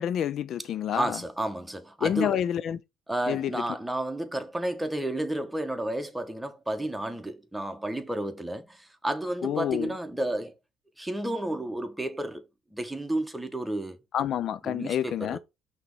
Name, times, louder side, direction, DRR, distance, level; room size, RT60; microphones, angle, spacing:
voice 1, 0.0-1.2 2.0-2.8 3.3-3.5 9.4-9.9 14.1-15.4, left 10 dB, 60° left, 0.4 m, -28 dB
voice 2, 0.9-2.4 3.1-10.5 11.0-12.4 12.7-14.0 14.6-15.4, right 1 dB, 5° right, 1.3 m, -31 dB
5.9 x 3.2 x 5.4 m
supercardioid pair, 70°, 0 cm